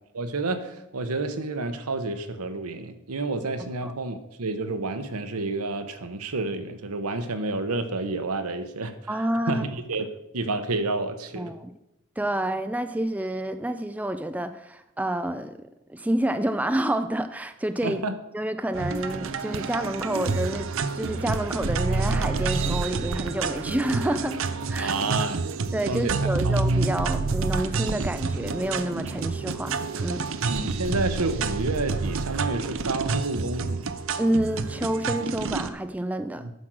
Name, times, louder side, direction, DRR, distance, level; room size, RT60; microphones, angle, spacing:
voice 1, 0.1-9.0 9.5-10.1 10.3-11.5 17.8-18.1 24.8-25.5 25.9-26.6 30.5-33.9 36.4-36.5, right 3 dB, 85° right, 9 dB, 1.0 m, -29 dB
voice 2, 9.1-9.6 11.4-11.7 12.2-15.6 15.9-18.0 18.3-20.7 20.9-24.4 24.7-25.0 25.7-30.3 34.2-36.5, right 1 dB, 5° right, 9 dB, 0.3 m, -28 dB
sound 1, 18.7-35.7, right 4 dB, 60° right, 0.6 m, -28 dB
9.5 x 6.4 x 6.2 m, 0.88 s
head